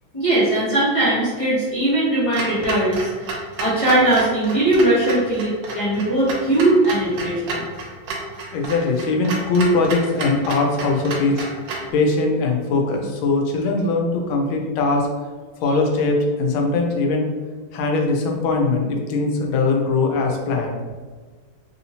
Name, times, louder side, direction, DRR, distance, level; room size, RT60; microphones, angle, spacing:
voice 1, 0.1-7.7, right 1 dB, 30° left, -10 dB, 0.7 m, -20 dB
Clock, 2.3-11.9, right 2 dB, 75° right, 1.3 m, -31 dB
voice 2, 8.5-11.4 11.9-15.1 15.6-17.3 17.7-20.8, left 3 dB, 90° left, 1 dB, 1.4 m, -21 dB
3.5 x 2.7 x 2.8 m, 1.5 s
omnidirectional pair, 2.2 m